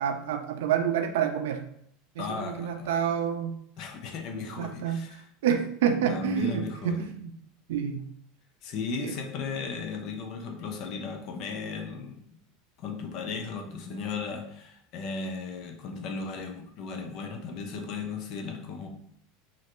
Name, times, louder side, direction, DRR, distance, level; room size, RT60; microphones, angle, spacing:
voice 1, 0.0-1.6 2.2-3.6 4.6-5.0 5.4-7.3 7.7-8.0 9.0-9.1, right 8 dB, 85° right, 7 dB, 0.4 m, -28 dB
voice 2, 2.2-3.2 3.8-5.2 6.1-7.1 8.6-12.2 12.8-18.9, left 4 dB, 40° left, 3 dB, 0.5 m, -36 dB
3.1 x 2.5 x 2.9 m, 0.68 s
supercardioid pair, 170°, 0 cm